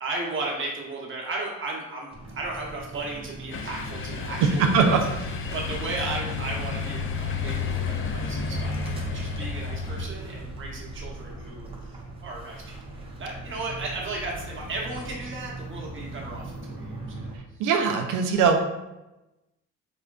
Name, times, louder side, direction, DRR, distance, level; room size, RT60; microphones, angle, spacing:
voice 1, 0.0-4.9 5.5-12.9 13.2-17.3, right 2 dB, 40° right, -3 dB, 1.1 m, -35 dB
sound 1, 2.1-17.4, right 2 dB, 20° right, 0.7 m, -40 dB
sound 2, 3.5-10.1, left 4 dB, 45° left, 0.4 m, -31 dB
voice 2, 4.6-5.0 17.6-18.6, right 5 dB, 90° right, 4 dB, 0.5 m, -21 dB
4.9 x 2.2 x 2.4 m, 0.98 s
cardioid pair, 90°, 30 cm